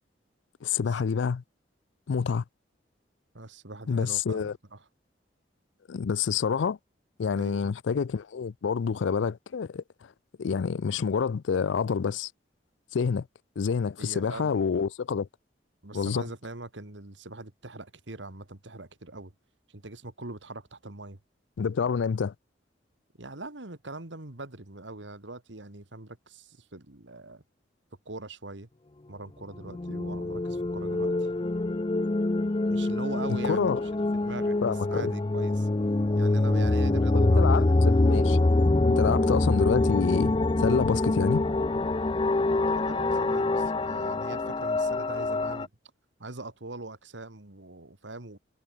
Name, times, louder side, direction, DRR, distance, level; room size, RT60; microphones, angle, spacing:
voice 1, 0.6-1.4 2.1-2.4 3.9-4.5 5.9-6.8 7.2-9.8 10.4-12.3 12.9-13.2 13.6-15.3 15.9-16.2 21.6-22.3 33.5-33.8 34.6-35.1 37.2-38.4 38.9-40.3 40.6-41.4, left 6 dB, 85° left, 0.4 m, -27 dB
voice 2, 3.3-4.9 7.3-7.7 14.0-14.9 15.8-19.3 19.7-21.2 23.2-27.4 28.1-28.7 29.1-31.3 32.7-35.7 36.2-37.9 42.3-45.7 46.2-48.4, right 2 dB, 80° right, 2.3 m, -42 dB
sound 1, 29.6-45.7, left 2 dB, 25° left, 0.5 m, -25 dB
head